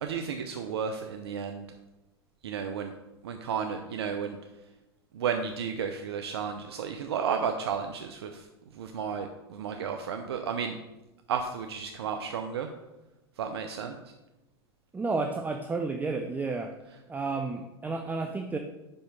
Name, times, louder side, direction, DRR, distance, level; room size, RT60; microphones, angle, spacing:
voice 1, 0.0-1.6 2.4-2.9 3.2-4.4 5.1-8.4 8.8-10.7 11.3-12.7 13.4-14.0 16.9-17.0, right 7 dB, 80° right, 6 dB, 0.6 m, -33 dB
voice 2, 14.9-16.7 17.1-18.6, right 3 dB, 10° right, 5 dB, 0.5 m, -31 dB
5.6 x 5.4 x 5.3 m, 1.0 s
hypercardioid pair, 100°, 13 cm